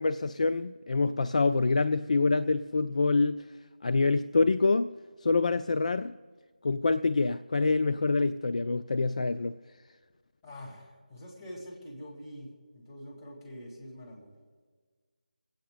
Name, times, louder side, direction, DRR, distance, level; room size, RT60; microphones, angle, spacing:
voice 1, 0.0-3.5 3.8-4.9 5.2-6.1 6.6-9.6, left 3 dB, 50° left, 12 dB, 0.3 m, -26 dB
voice 2, 10.4-14.4, equal, 20° left, -4 dB, 2.5 m, -45 dB
25.5 x 8.7 x 3.9 m, 1.5 s
figure-of-eight pair, 165°, 5 cm